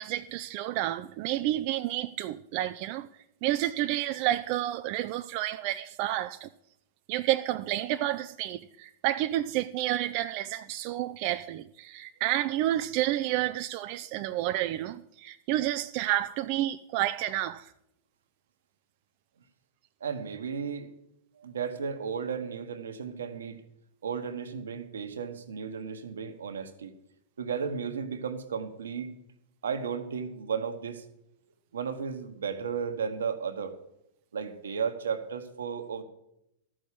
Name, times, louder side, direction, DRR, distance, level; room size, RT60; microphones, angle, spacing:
voice 1, 0.0-3.1 3.4-6.5 7.1-17.7, right 14 dB, 50° right, 0.5 m, -30 dB
voice 2, 20.0-20.9 21.4-23.6 24.0-26.9 27.4-29.1 29.6-31.0 31.7-33.8 34.3-36.0, right 6 dB, 85° right, 1.3 m, -34 dB
13.5 x 6.3 x 8.4 m
hypercardioid pair, 110°, 0 cm